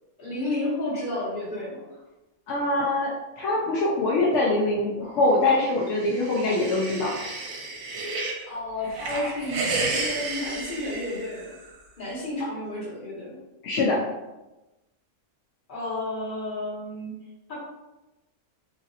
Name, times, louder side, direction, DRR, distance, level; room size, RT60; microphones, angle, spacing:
voice 1, 0.2-1.8 8.5-11.5 12.0-13.4 15.7-17.1 17.5-17.6, left 1 dB, 35° left, -8 dB, 1.3 m, -31 dB
voice 2, 2.5-7.1 13.6-14.0, left 2 dB, 65° left, -4 dB, 0.8 m, -23 dB
sound 1, 5.7-8.4 8.8-11.7, right 3 dB, 75° right, 1.0 m, -32 dB
3.0 x 2.4 x 2.7 m, 1.0 s
omnidirectional pair, 1.5 m